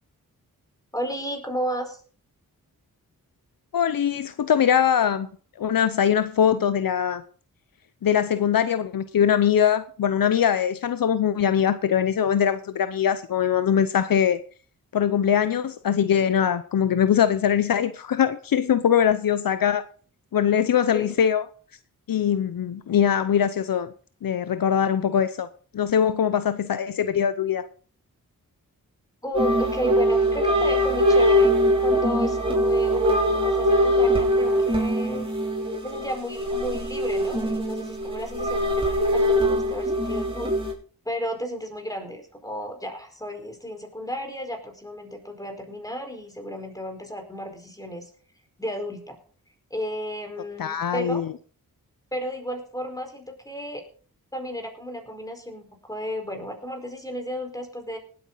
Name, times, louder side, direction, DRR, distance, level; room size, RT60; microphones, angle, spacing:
voice 1, 0.9-2.0 20.9-21.1 29.2-31.5 31.8-35.3 35.8-40.5 41.0-48.1 48.6-49.2 49.7-51.2 52.1-53.8 54.3-58.0, equal, 10° left, 4.6 m, -33 dB
voice 2, 3.7-5.3 5.6-7.2 8.0-14.4 14.9-19.9 20.3-21.4 22.1-23.9 24.2-25.5 25.7-27.7 50.6-51.3, left 8 dB, 70° left, 0.7 m, -22 dB
sound 1, 29.3-40.7, equal, 15° right, 5.6 m, -22 dB
19.0 x 8.9 x 4.0 m
cardioid pair, 65°, 36 cm